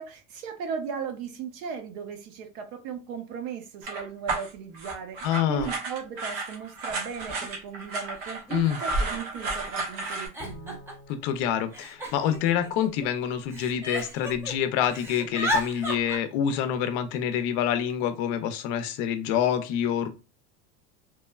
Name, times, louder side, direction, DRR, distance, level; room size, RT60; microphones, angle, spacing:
voice 1, 0.0-10.8, right 6 dB, 65° right, 0.7 m, -37 dB
sound 1, 3.8-10.3, right 2 dB, 85° right, 1.0 m, -32 dB
voice 2, 5.2-5.7 8.5-8.8 11.1-20.1, left 9 dB, 60° left, 0.5 m, -27 dB
Giggle, 7.4-7.5 8.5-8.6 8.8-9.4 10.0-11.1 11.7-13.0 13.5-14.5 14.8-16.2, equal, 5° right, 0.4 m, -33 dB
Bowed string instrument, 10.4-13.0, equal, 25° left, 0.7 m, -50 dB
3.0 x 2.1 x 2.2 m
cardioid pair, 155°, 37 cm